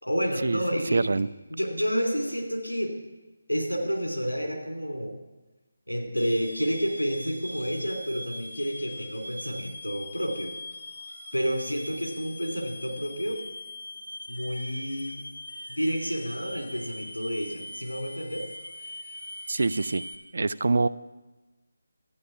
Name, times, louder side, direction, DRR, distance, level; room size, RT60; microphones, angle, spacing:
voice 1, 0.0-1.1 1.5-2.9 3.5-5.2 5.9-10.5 11.3-13.4 14.3-15.2 15.7-18.5, equal, 90° left, 2 dB, 3.0 m, -30 dB
voice 2, 0.9-1.3 19.5-20.0 20.3-20.9, right 3 dB, 60° right, 18 dB, 0.4 m, -24 dB
sound 1, 6.2-20.2, left 1 dB, 60° left, 1.2 m, -41 dB
13.0 x 9.4 x 5.9 m, 1.1 s
figure-of-eight pair, 155°, 0 cm